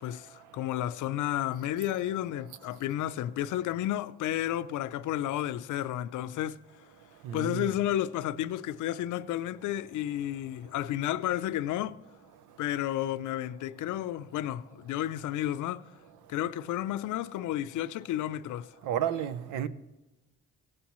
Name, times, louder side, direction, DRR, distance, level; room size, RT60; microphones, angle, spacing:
voice 1, 0.0-6.6 7.3-12.0 12.6-15.9 16.3-18.7, left 12 dB, 80° left, 0.6 m, -32 dB
voice 2, 7.2-7.7 18.8-19.7, right 9 dB, 90° right, 0.7 m, -31 dB
16.5 x 14.0 x 3.1 m
cardioid pair, 90°, 30 cm